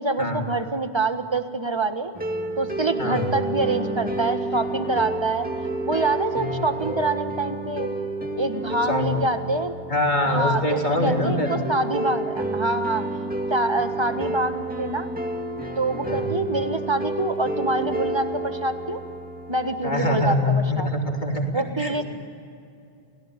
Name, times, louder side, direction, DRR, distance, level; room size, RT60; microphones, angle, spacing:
voice 1, 0.0-2.1 2.6-5.5 5.9-7.9 8.3-9.7 10.3-13.0 13.5-15.1 15.8-19.0 19.5-20.9 21.5-22.0, right 2 dB, 25° right, 8 dB, 1.5 m, -26 dB
sound 1, 2.1-20.2, right 2 dB, 10° right, 2.3 m, -30 dB
voice 2, 8.8-9.2 9.9-11.7 16.0-16.3 19.8-22.0, left 1 dB, 45° left, 1 dB, 3.5 m, -24 dB
29.0 x 18.0 x 9.9 m, 2.5 s
omnidirectional pair, 1.1 m